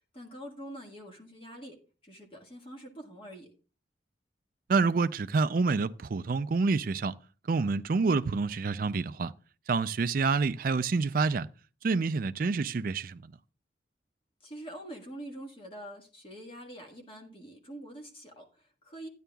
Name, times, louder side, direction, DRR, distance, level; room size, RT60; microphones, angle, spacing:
voice 1, 0.1-1.8 2.0-3.5 14.4-19.1, right 1 dB, 30° left, 1.6 m, -45 dB
voice 2, 4.7-7.1 7.5-9.3 9.7-11.5 11.8-13.2, right 4 dB, 50° right, 0.4 m, -27 dB
14.5 x 10.0 x 2.3 m
head